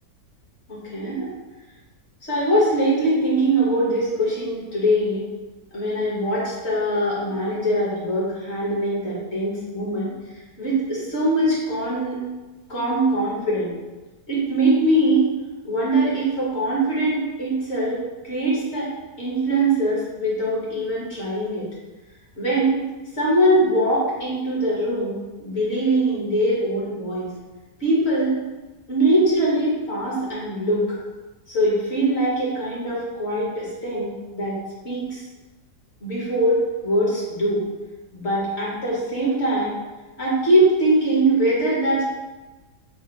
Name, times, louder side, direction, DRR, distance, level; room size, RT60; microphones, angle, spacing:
voice 1, 0.7-1.3 2.2-5.2 5.7-10.1 10.6-12.2 12.7-13.7 14.3-15.2 15.6-18.9 19.2-21.7 22.4-22.8 23.2-27.3 27.8-28.3 28.9-30.8 31.5-34.5 34.8-35.2 36.0-37.6 38.1-39.7 40.2-42.0, right 1 dB, 40° left, -7 dB, 1.5 m, -22 dB
4.3 x 2.3 x 4.5 m, 1.2 s
omnidirectional pair, 1.8 m